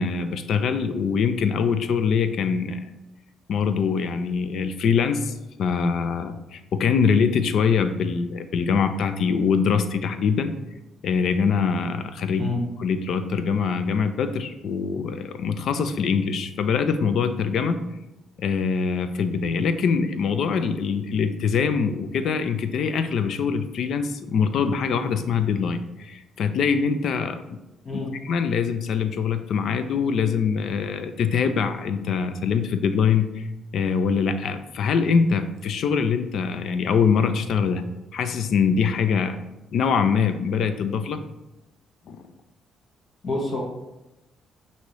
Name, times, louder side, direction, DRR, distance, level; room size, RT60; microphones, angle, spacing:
voice 1, 0.0-2.8 3.5-5.3 5.6-10.5 11.0-12.5 12.8-17.8 18.4-27.6 27.9-33.5 33.7-37.8 38.1-39.4 39.7-41.2 42.1-42.2, left 6 dB, 70° left, 9 dB, 0.4 m, -23 dB
voice 2, 43.2-43.6, left 3 dB, 55° left, -3 dB, 1.2 m, -27 dB
6.0 x 2.8 x 3.1 m, 0.97 s
cardioid pair, 90°, 0 cm